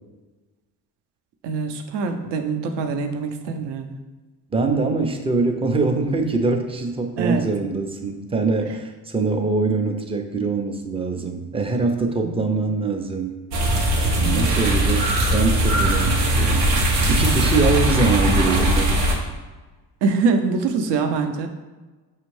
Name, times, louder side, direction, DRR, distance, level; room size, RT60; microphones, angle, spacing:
voice 1, 1.4-4.0 7.2-7.5 12.2-12.5 14.2-14.5 20.0-21.5, right 4 dB, 55° right, 6 dB, 0.7 m, -24 dB
voice 2, 4.5-13.4 14.2-16.7 17.1-19.0, right 3 dB, 10° right, 5 dB, 0.4 m, -23 dB
sound 1, 13.5-19.2, right 1 dB, 90° right, 0.8 m, -20 dB
5.4 x 2.4 x 3.2 m, 1.2 s
hypercardioid pair, 60°, 49 cm